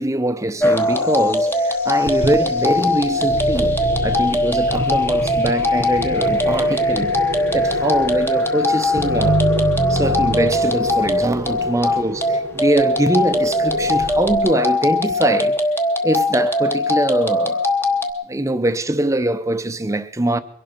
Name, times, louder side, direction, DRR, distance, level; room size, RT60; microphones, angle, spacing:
voice 1, 0.0-7.2 7.5-9.4 9.9-15.6 16.0-17.7 18.3-20.4, right 1 dB, 15° right, 0.7 m, -22 dB
sound 1, 0.6-18.1, left 2 dB, 10° left, 1.0 m, -20 dB
sound 2, 2.1-14.4, right 1 dB, 75° right, 1.2 m, -27 dB
22.5 x 11.5 x 4.5 m
head